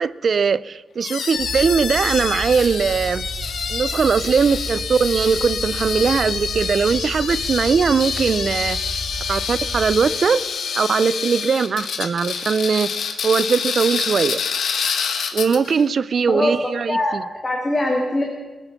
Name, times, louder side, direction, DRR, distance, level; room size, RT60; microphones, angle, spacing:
voice 1, 0.0-3.3 3.7-9.0 9.3-10.4 10.7-12.9 13.2-14.4 15.3-17.2, right 5 dB, 55° right, 17 dB, 0.5 m, -20 dB
sound 1, 1.0-15.8, left 6 dB, 85° left, 1.3 m, -27 dB
sound 2, 1.4-10.0, right 2 dB, 70° right, 4.4 m, -33 dB
voice 2, 16.3-18.3, left 1 dB, 20° left, 0 dB, 2.0 m, -22 dB
20.5 x 8.9 x 5.9 m, 1.2 s
wide cardioid pair, 150°, 0 cm